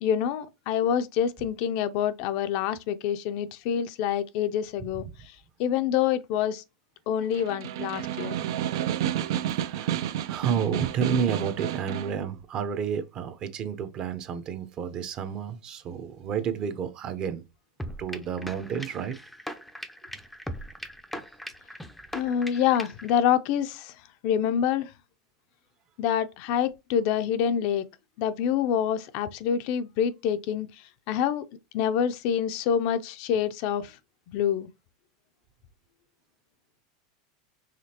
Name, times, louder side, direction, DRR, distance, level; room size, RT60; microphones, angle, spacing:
voice 1, 0.0-5.1 5.6-6.6 7.1-8.4 22.1-23.9 24.2-24.9 26.0-27.8 28.2-30.7 31.1-31.4 31.7-33.9 34.3-34.7, left 9 dB, 55° left, 0.5 m, -26 dB
Snare drum, 7.2-12.2, right 11 dB, 70° right, 0.4 m, -30 dB
voice 2, 9.2-10.0 10.3-17.4 18.0-19.2, right 7 dB, 35° right, 0.7 m, -31 dB
sound 1, 17.8-23.1, equal, 5° left, 0.5 m, -39 dB
5.0 x 3.3 x 2.9 m
supercardioid pair, 135°, 2 cm